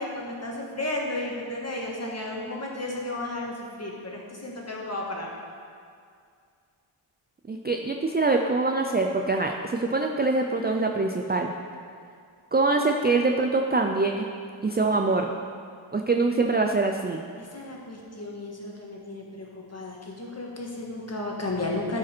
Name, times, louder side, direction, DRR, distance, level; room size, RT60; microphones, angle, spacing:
voice 1, 0.0-5.3 17.4-22.0, left 2 dB, 30° left, -2 dB, 1.5 m, -33 dB
voice 2, 7.5-11.5 12.5-14.3 14.6-15.3 15.9-17.2, right 3 dB, 20° right, 3 dB, 0.3 m, -24 dB
12.5 x 5.0 x 4.4 m, 2.3 s
wide cardioid pair, 105°, 50 cm